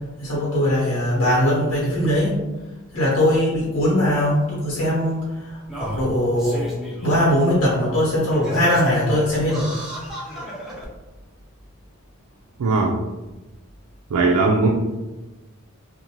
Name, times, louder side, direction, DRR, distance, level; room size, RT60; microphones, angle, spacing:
voice 1, 0.2-2.4 2.9-6.6 7.0-9.7, left 1 dB, 60° left, -7 dB, 1.1 m, -20 dB
Singing, 3.8-3.9 4.9-5.0 5.6-7.3 7.8-7.9 8.3-10.9 11.6-11.7, equal, ahead, 0.4 m, -34 dB
voice 2, 12.6-13.0 14.1-14.7, right 3 dB, 85° right, 0 dB, 0.3 m, -18 dB
2.6 x 2.1 x 2.9 m, 1.1 s
head